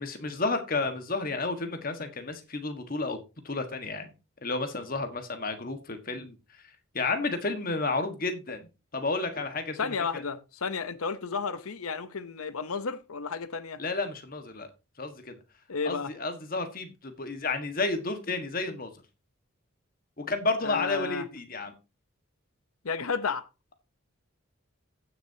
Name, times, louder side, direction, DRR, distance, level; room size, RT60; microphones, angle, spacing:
voice 1, 0.0-4.1 4.4-6.4 6.9-8.7 8.9-10.2 13.8-14.7 15.0-15.3 15.8-18.9 20.2-21.7, left 3 dB, 40° left, 1.5 m, -31 dB
voice 2, 9.8-13.8 15.7-16.1 20.6-21.3 22.8-23.5, left 5 dB, 85° left, 0.8 m, -32 dB
16.0 x 6.7 x 2.8 m
head